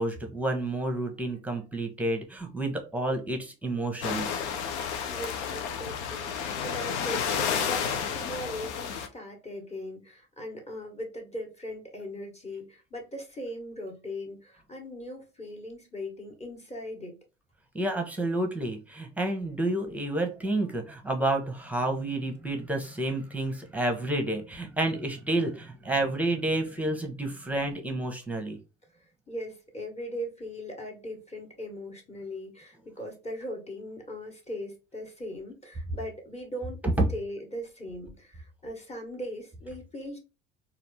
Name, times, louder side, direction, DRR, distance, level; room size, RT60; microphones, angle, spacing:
voice 1, 0.0-4.4 17.7-28.6 37.0-37.1, right 1 dB, 5° right, 1.2 m, -30 dB
sound 1, 4.0-9.1, left 7 dB, 75° left, 0.8 m, -31 dB
voice 2, 5.1-17.2 29.3-36.8 37.1-40.2, equal, 20° left, 1.7 m, -39 dB
4.1 x 2.7 x 3.4 m
figure-of-eight pair, 60°, 34 cm